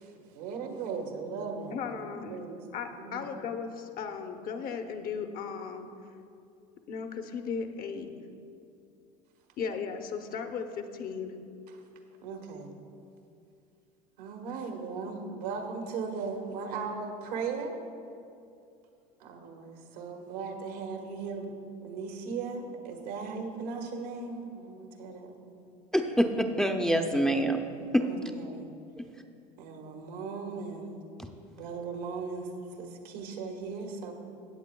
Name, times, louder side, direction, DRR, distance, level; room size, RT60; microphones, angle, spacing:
voice 1, 0.0-2.6 3.0-3.2 11.7-11.8 12.2-12.7 14.2-17.8 19.2-21.5 21.8-25.7 28.0-28.7 29.6-31.0 31.6-34.1, right 5 dB, 80° right, 3 dB, 1.4 m, -38 dB
voice 2, 1.7-2.4 2.7-5.9 6.9-8.1 9.6-11.3, left 6 dB, 45° left, 6 dB, 0.9 m, -36 dB
voice 3, 25.9-27.7 27.9-28.1 29.0-29.1 31.2-31.3, equal, 5° left, 4 dB, 0.6 m, -26 dB
15.5 x 8.1 x 2.3 m, 2.6 s
hypercardioid pair, 85°, 20 cm